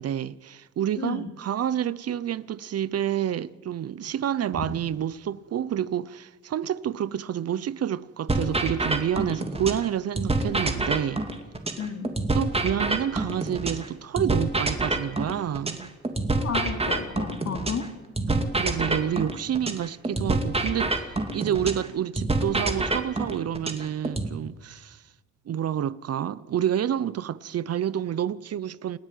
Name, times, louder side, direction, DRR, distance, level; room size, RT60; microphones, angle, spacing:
voice 1, 0.0-11.2 12.3-15.9 18.3-25.0 25.5-29.0, right 10 dB, 55° right, 0.8 m, -29 dB
sound 1, 8.3-9.9 10.2-13.9 14.2-17.9 18.2-21.9 22.2-24.3, right 2 dB, 20° right, 2.6 m, -26 dB
voice 2, 11.8-12.2 16.4-17.9, left 6 dB, 55° left, 3.0 m, -32 dB
28.5 x 10.5 x 9.3 m
cardioid pair, 90°, 30 cm